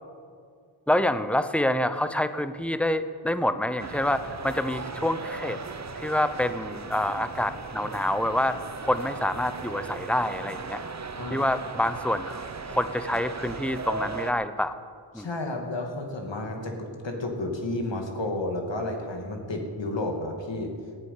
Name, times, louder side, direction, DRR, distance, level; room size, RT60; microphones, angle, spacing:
voice 1, 0.9-5.6 6.0-8.6 8.8-10.8 11.3-14.8 15.1-15.3, left 1 dB, 5° left, 11 dB, 0.8 m, -27 dB
sound 1, 3.8-14.3, right 4 dB, 35° right, 0.9 m, -37 dB
voice 2, 15.1-20.7, left 2 dB, 65° left, 2 dB, 2.6 m, -31 dB
15.0 x 9.1 x 8.5 m, 2.1 s
cardioid pair, 55°, 48 cm